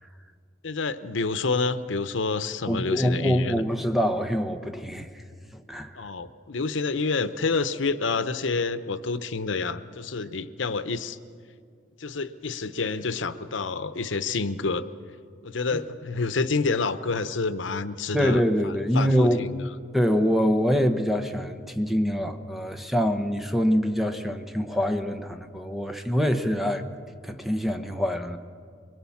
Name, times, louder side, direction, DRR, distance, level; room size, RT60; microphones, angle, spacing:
voice 1, 0.6-3.6 6.0-11.2 12.0-14.9 15.4-19.6, left 4 dB, 85° left, 13 dB, 0.8 m, -28 dB
voice 2, 2.7-5.2 5.5-6.0 15.7-15.8 18.1-19.4 19.9-26.9 27.2-28.4, equal, ahead, 6 dB, 1.0 m, -25 dB
23.5 x 23.0 x 7.2 m, 2.2 s
head